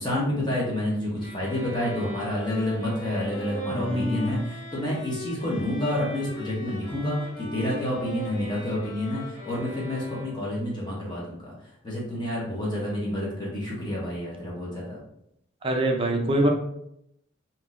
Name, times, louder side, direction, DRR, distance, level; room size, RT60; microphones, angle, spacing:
voice 1, 0.0-11.5 11.8-15.0, left 1 dB, 20° left, -5 dB, 1.0 m, -29 dB
sound 1, 1.2-10.6, equal, 70° left, 1.1 m, -39 dB
voice 2, 3.7-4.4 15.6-16.5, right 1 dB, 25° right, 2 dB, 0.4 m, -24 dB
3.6 x 2.8 x 2.5 m, 0.77 s
head